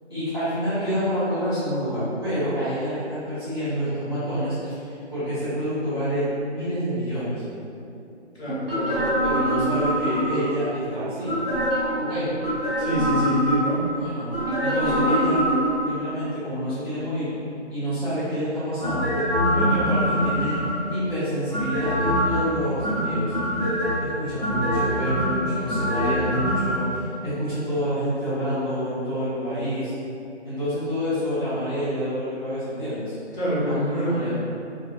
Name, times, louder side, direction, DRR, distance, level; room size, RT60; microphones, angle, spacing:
voice 1, 0.1-7.4 9.3-11.3 12.0-12.3 13.9-14.2 14.6-15.4 15.8-17.4 17.7-19.1 19.5-20.6 20.9-23.3 24.0-29.9 30.4-33.1 33.6-34.3, equal, 20° right, -18 dB, 0.9 m, -28 dB
sound 1, 7.6-7.7 8.5-15.8, right 2 dB, 55° right, 0.5 m, -34 dB
voice 2, 8.3-9.0 12.8-13.8 33.3-34.3, equal, 65° left, -10 dB, 1.4 m, -26 dB
sound 2, 8.7-10.5 11.2-12.0 12.4-13.9 14.3-16.0 18.8-20.9 21.5-22.4 22.8-24.0 24.4-26.8 27.0-27.1, equal, 35° left, 0.6 m, -24 dB
2.6 x 2.3 x 2.6 m, 2.6 s
figure-of-eight pair, 175°, 35 cm